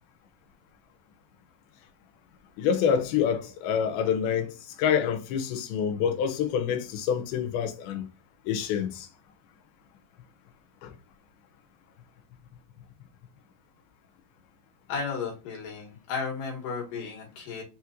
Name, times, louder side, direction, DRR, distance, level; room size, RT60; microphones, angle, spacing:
voice 1, 2.6-4.5 4.8-8.1 8.5-9.1 10.8-10.9, left 7 dB, 85° left, 2.6 m, -27 dB
voice 2, 14.9-17.6, left 5 dB, 70° left, 2.6 m, -34 dB
6.3 x 2.8 x 2.5 m
omnidirectional pair, 4.3 m